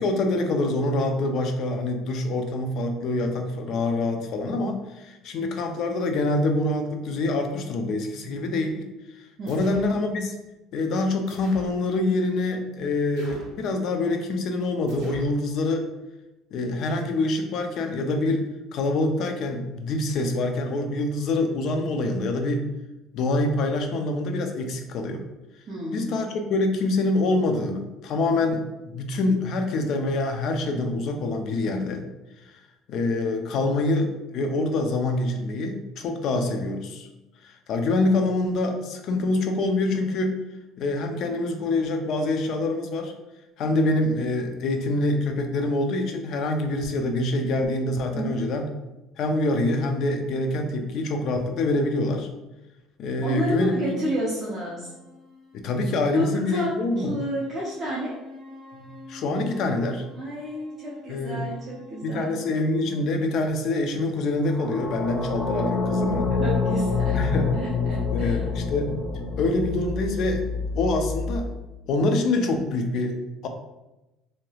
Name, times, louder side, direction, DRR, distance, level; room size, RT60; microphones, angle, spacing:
voice 1, 0.0-10.3 10.7-15.9 16.5-22.7 23.1-25.2 25.9-32.0 32.5-32.6 32.9-37.1 37.4-40.4 40.8-43.1 43.6-48.7 49.2-52.3 53.0-54.1 55.5-57.2 58.7-60.1 61.1-61.5 62.0-66.3 67.1-67.5 68.1-68.9 69.3-70.4 70.7-71.5 71.9-73.2 73.4-73.5, left 2 dB, 55° left, 5 dB, 0.4 m, -25 dB
voice 2, 9.4-9.7 25.7-26.1 48.1-48.5 53.2-54.9 56.1-58.1 60.2-62.4 66.3-67.2 67.5-68.4, equal, 35° right, -7 dB, 0.6 m, -30 dB
sound 1, 9.5-10.0 11.3-11.8 13.2-13.7 14.9-15.4, equal, 80° right, 0.7 m, -45 dB
sound 2, 58.0-59.3 64.4-71.4, left 4 dB, 25° left, 0.8 m, -27 dB
3.2 x 2.8 x 2.3 m, 1.0 s
cardioid pair, 150°, 0 cm